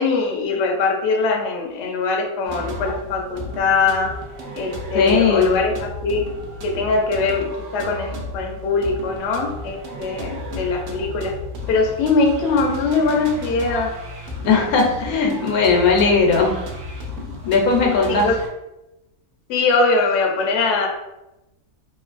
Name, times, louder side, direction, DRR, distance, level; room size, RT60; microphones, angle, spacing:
voice 1, 0.0-4.1 4.5-6.2 6.6-7.5 7.7-11.3 11.7-13.9 18.1-18.4 19.5-20.9, left 4 dB, 65° left, 1 dB, 0.7 m, -21 dB
sound 1, 2.4-18.5, left 1 dB, 60° right, 0.8 m, -33 dB
voice 2, 4.9-5.5 14.4-16.5 17.2-18.3, left 4 dB, 85° left, 1 dB, 1.1 m, -18 dB
2.9 x 2.4 x 2.4 m, 0.94 s
omnidirectional pair, 1.5 m